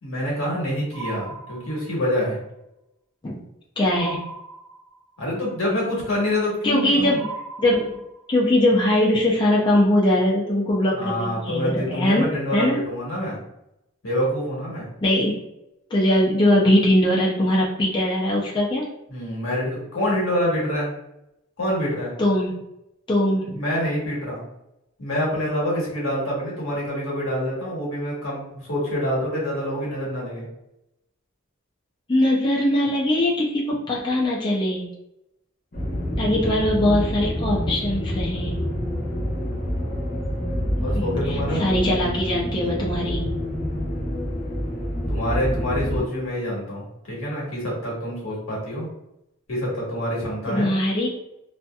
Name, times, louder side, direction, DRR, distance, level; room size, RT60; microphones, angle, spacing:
voice 1, 0.0-2.4 5.2-7.2 10.9-13.4 14.0-14.9 19.1-20.9 21.6-22.1 23.5-24.4 25.0-30.5 40.8-41.6 45.1-48.9 49.5-50.7, equal, 85° left, -5 dB, 1.2 m, -26 dB
sound 1, 0.9-2.2 3.9-5.2 7.2-8.4, right 4 dB, 80° right, 0.7 m, -38 dB
voice 2, 3.8-4.2 6.6-7.3 7.6-7.9 8.3-12.8 15.0-15.4 15.9-18.8 22.2-22.5 23.1-23.6 32.1-34.9 36.2-38.5 41.0-43.2 50.5-51.1, left 1 dB, 20° left, -4 dB, 0.4 m, -21 dB
sound 2, 35.7-46.0, equal, 45° left, 0.8 m, -27 dB
2.7 x 2.5 x 2.2 m, 0.85 s
head